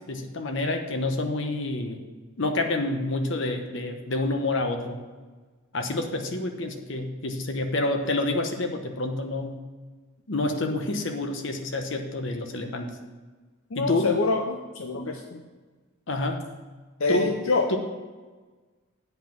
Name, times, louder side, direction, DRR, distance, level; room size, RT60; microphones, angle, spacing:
voice 1, 0.1-2.0 2.4-5.0 5.7-9.6 10.3-12.9 13.7-14.1 14.9-15.1 16.1-16.4 17.1-17.4 17.7-17.8, left 2 dB, 60° left, 5 dB, 1.0 m, -28 dB
voice 2, 13.7-15.4 17.0-17.7, left 3 dB, 80° left, 4 dB, 0.8 m, -26 dB
8.3 x 5.7 x 7.4 m, 1.3 s
head